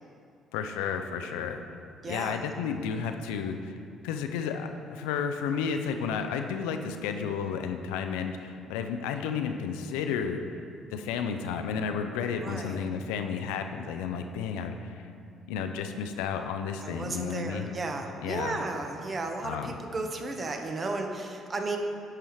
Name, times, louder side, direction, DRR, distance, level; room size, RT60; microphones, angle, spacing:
voice 1, 0.5-1.6 2.1-3.7 4.0-10.4 10.9-15.0 15.5-17.7 18.2-18.6 19.4-19.7, left 6 dB, 75° left, 6 dB, 0.4 m, -32 dB
voice 2, 2.0-2.4 12.4-12.8 16.8-21.8, right 3 dB, 40° right, 3 dB, 0.8 m, -34 dB
10.5 x 4.8 x 3.1 m, 2.4 s
hypercardioid pair, 50°, 0 cm